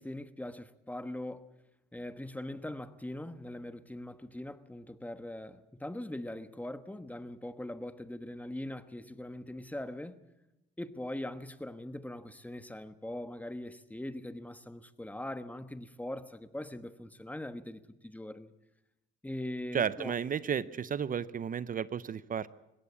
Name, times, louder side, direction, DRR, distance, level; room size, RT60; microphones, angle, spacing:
voice 1, 0.0-1.4 1.9-10.2 10.8-18.5 19.2-20.1, left 1 dB, 10° left, 1.2 m, -41 dB
voice 2, 19.7-22.5, right 7 dB, 45° right, 0.7 m, -33 dB
20.5 x 17.0 x 8.5 m
cardioid pair, 90°, 20 cm